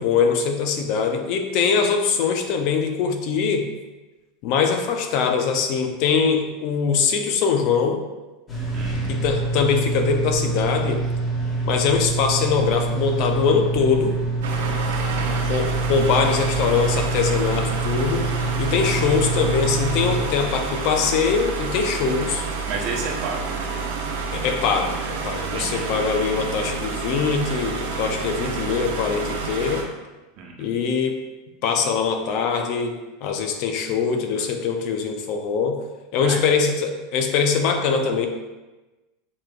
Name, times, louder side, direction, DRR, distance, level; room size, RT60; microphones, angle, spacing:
voice 1, 0.0-3.7 4.4-8.0 9.1-11.0 11.6-14.2 15.5-18.3 18.6-22.4 24.3-29.9 30.6-31.2 31.6-32.9 33.2-35.8 36.1-38.3, left 6 dB, 55° left, 5 dB, 0.6 m, -22 dB
sound 1, 8.5-20.2, right 3 dB, 30° left, 1.3 m, -26 dB
voice 2, 8.7-9.4 15.0-15.5 22.7-24.0 25.5-26.2 30.4-30.5 36.2-36.4, right 4 dB, 55° right, -1 dB, 1.0 m, -33 dB
sound 2, 14.4-29.8, right 4 dB, 85° right, 0.8 m, -29 dB
7.2 x 3.1 x 2.4 m, 1.1 s
supercardioid pair, 120°, 0 cm